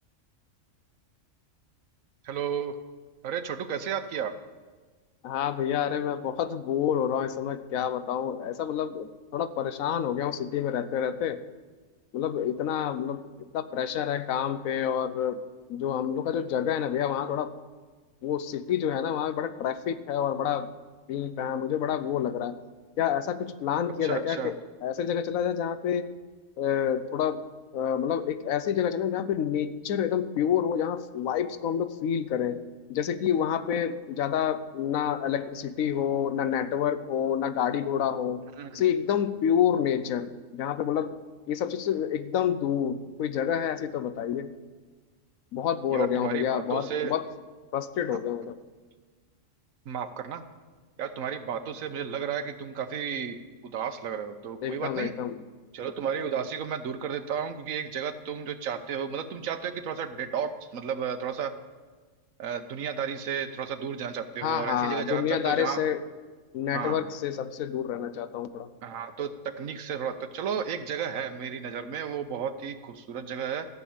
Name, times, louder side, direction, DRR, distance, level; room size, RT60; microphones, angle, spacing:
voice 1, 2.2-2.7 3.2-4.3 24.0-24.5 38.6-38.8 45.9-47.1 49.9-50.4 51.0-53.4 53.6-55.1 55.7-61.5 62.4-65.8 66.7-67.0 68.8-73.7, right 7 dB, 80° right, 10 dB, 1.2 m, -33 dB
voice 2, 5.2-11.4 12.1-15.4 15.7-17.5 18.2-20.7 21.1-22.6 23.0-26.1 26.6-27.5 27.7-32.6 32.9-38.5 38.7-41.1 41.5-44.5 45.5-47.2 47.7-48.6 54.6-55.4 64.4-66.0 66.5-68.7, left 9 dB, 90° left, 12 dB, 1.1 m, -28 dB
13.5 x 6.9 x 8.5 m, 1.4 s
omnidirectional pair, 1.4 m